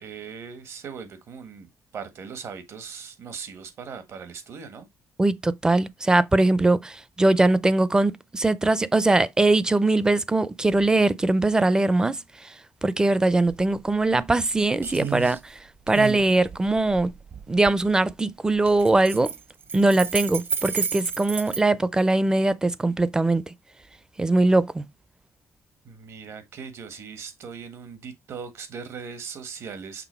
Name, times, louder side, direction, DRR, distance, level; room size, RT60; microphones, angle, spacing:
voice 1, 0.0-1.7 1.9-4.9 25.8-30.0, right 6 dB, 55° right, 1.5 m, -39 dB
voice 2, 5.2-12.2 12.8-15.4 15.9-17.1 17.5-19.3 19.7-23.4 24.2-24.8, right 2 dB, 15° right, 0.5 m, -21 dB
sound 1, 13.5-13.6 14.0-14.5 14.8-15.4 15.9-17.8 18.6-21.6, right 6 dB, 40° right, 1.0 m, -31 dB
6.1 x 3.7 x 4.3 m
cardioid pair, 130°, 5 cm